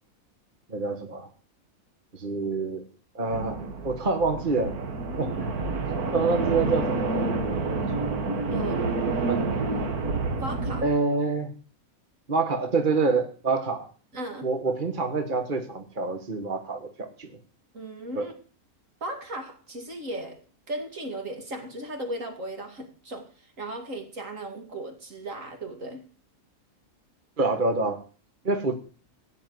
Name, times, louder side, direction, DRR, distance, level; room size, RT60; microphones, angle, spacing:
voice 1, 0.7-1.3 2.1-2.8 3.1-3.6 3.8-4.8 5.2-5.5 6.1-7.3 9.3-9.4 10.8-11.5 12.3-13.9 14.4-17.3 18.1-18.3 27.4-28.0 28.4-28.7, right 3 dB, 35° right, 6 dB, 1.7 m, -26 dB
sound 1, 3.3-10.8, right 3 dB, 85° right, 2.0 m, -28 dB
voice 2, 8.5-8.8 10.3-10.9 14.1-14.5 17.7-18.3 19.0-20.4 20.7-23.3 23.6-26.0, right 1 dB, 60° right, 5 dB, 2.7 m, -36 dB
16.0 x 5.8 x 9.5 m, 0.39 s
omnidirectional pair, 1.5 m